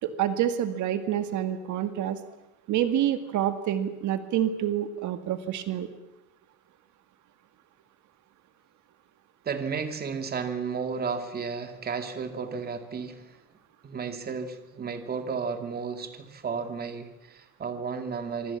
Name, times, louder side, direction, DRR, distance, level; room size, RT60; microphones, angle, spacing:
voice 1, 0.0-2.2 2.7-5.9, right 11 dB, 70° right, 9 dB, 2.0 m, -27 dB
voice 2, 9.4-13.4 13.8-18.6, right 5 dB, 30° right, 7 dB, 2.5 m, -33 dB
26.5 x 25.0 x 7.4 m, 0.91 s
cardioid pair, 155°, 31 cm